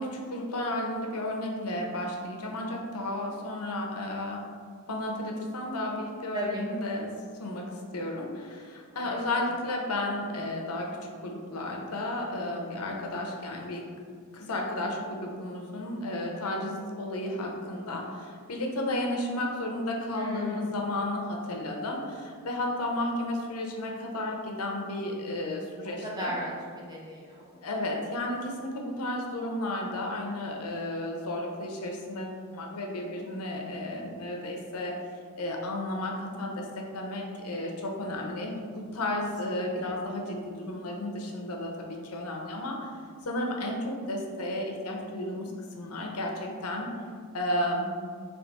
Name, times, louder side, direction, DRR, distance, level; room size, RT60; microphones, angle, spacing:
voice 1, 0.0-4.4 4.9-7.1 7.4-13.8 14.3-26.3 27.6-35.0 35.4-42.9 43.2-46.9 47.3-47.9, left 1 dB, 80° left, 1 dB, 0.7 m, -33 dB
voice 2, 6.3-6.7 8.9-9.4 20.1-20.7 26.0-27.7 39.5-39.9, equal, 20° right, -5 dB, 0.9 m, -36 dB
3.4 x 3.3 x 4.1 m, 2.1 s
head